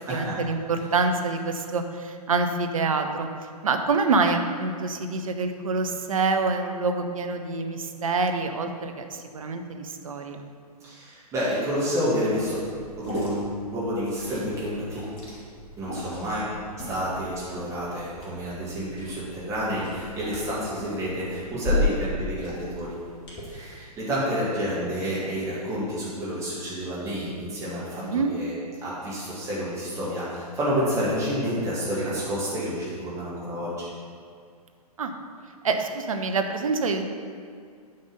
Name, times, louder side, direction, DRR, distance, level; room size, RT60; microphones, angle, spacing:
voice 1, 0.1-3.3 3.6-10.4 28.0-28.3 35.0-35.1 35.6-37.1, right 4 dB, 60° right, 5 dB, 0.8 m, -26 dB
voice 2, 10.8-12.6 13.0-15.0 15.8-16.5 16.9-23.0 23.5-28.5 28.8-33.9, equal, 15° right, -9 dB, 1.9 m, -29 dB
Liquid, 12.3-23.4, left 1 dB, 25° left, 1.9 m, -34 dB
9.5 x 5.3 x 5.2 m, 2.1 s
figure-of-eight pair, 115°, 20 cm